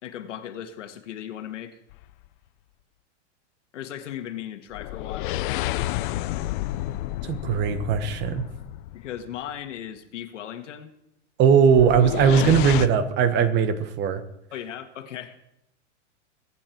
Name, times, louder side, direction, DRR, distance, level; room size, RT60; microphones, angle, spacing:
voice 1, 0.0-1.8 3.7-5.4 8.9-10.9 14.5-15.4, left 10 dB, 75° left, 7 dB, 1.8 m, -37 dB
sound 1, 1.9-2.3 4.7-9.3 11.7-12.9, left 15 dB, 45° left, 0.6 m, -30 dB
voice 2, 7.3-8.4 11.4-14.2, right 7 dB, 30° right, 11 dB, 1.2 m, -19 dB
22.5 x 9.1 x 4.6 m, 0.85 s
supercardioid pair, 145°, 36 cm